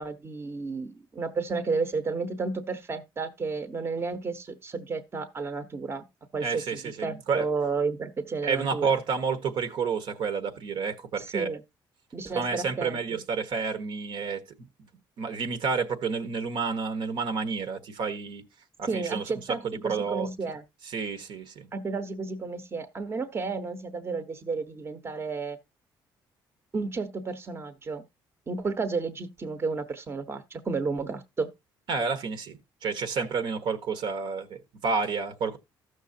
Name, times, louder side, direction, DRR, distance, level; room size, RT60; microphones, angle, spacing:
voice 1, 0.0-6.0 6.3-8.9 11.3-11.6 12.1-13.2 18.9-20.6 21.7-25.6 26.7-28.0 28.5-31.5, right 4 dB, 30° right, 0.9 m, -32 dB
voice 2, 6.4-7.5 8.4-11.6 12.3-14.4 14.8-14.9 15.2-18.4 18.8-19.3 19.6-20.3 20.8-21.7 31.9-35.6, right 5 dB, 70° right, 1.2 m, -30 dB
14.0 x 6.4 x 2.7 m
cardioid pair, 110°, 9 cm